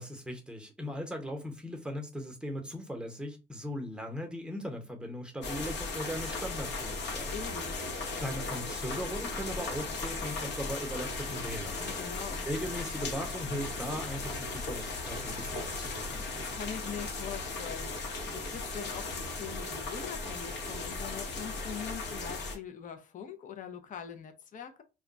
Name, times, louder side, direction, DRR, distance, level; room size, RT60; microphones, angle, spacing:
voice 1, 0.0-7.4 8.2-11.9 12.5-16.3, equal, 5° right, 0.8 m, -38 dB
sound 1, 5.4-22.6, left 3 dB, 65° left, 0.9 m, -37 dB
voice 2, 7.3-7.8 11.8-12.5 16.3-24.8, left 8 dB, 45° left, 0.5 m, -43 dB
2.2 x 2.2 x 3.8 m
cardioid pair, 90°, 19 cm